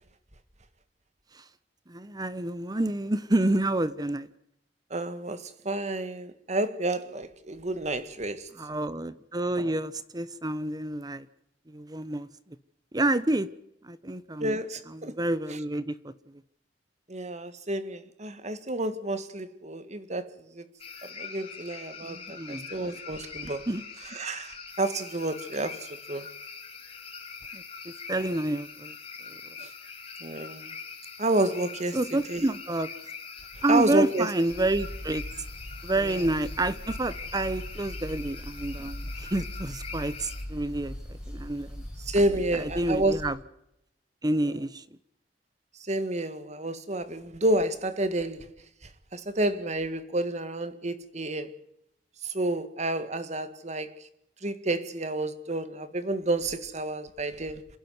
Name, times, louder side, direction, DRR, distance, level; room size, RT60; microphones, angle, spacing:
voice 1, 1.9-4.3 8.6-11.3 11.7-12.3 12.9-13.5 13.8-14.6 14.9-16.1 22.0-22.7 23.7-23.8 27.5-28.9 29.3-29.4 31.9-32.9 33.6-35.2 35.8-41.8 42.6-43.4 44.2-44.8, right 1 dB, 25° right, 0.9 m, -29 dB
voice 2, 4.9-8.5 14.4-15.2 15.5-15.6 17.1-20.7 21.0-23.6 24.1-26.3 29.6-29.7 30.2-30.8 31.2-32.0 32.3-32.5 33.7-34.3 36.0-36.2 42.0-43.2 44.5-44.6 45.8-48.5 49.1-51.6 52.2-53.9 54.4-57.7, right 2 dB, 40° right, 1.9 m, -30 dB
sound 1, 20.8-40.4, left 5 dB, 35° left, 4.6 m, -43 dB
sound 2, 34.5-43.3, equal, 5° right, 7.3 m, -40 dB
28.0 x 11.5 x 9.5 m
head